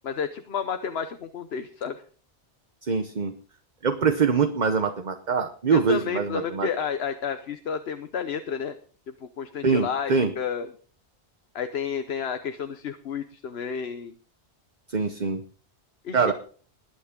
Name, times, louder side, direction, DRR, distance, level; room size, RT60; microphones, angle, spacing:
voice 1, 0.0-2.0 5.7-8.8 9.1-10.7 11.5-14.1 16.0-16.3, left 7 dB, 70° left, 9 dB, 1.1 m, -31 dB
voice 2, 2.8-3.3 3.8-6.7 9.6-10.3 14.9-15.4 16.1-16.3, right 5 dB, 45° right, 7 dB, 1.1 m, -24 dB
21.0 x 8.5 x 3.7 m, 0.42 s
omnidirectional pair, 1.1 m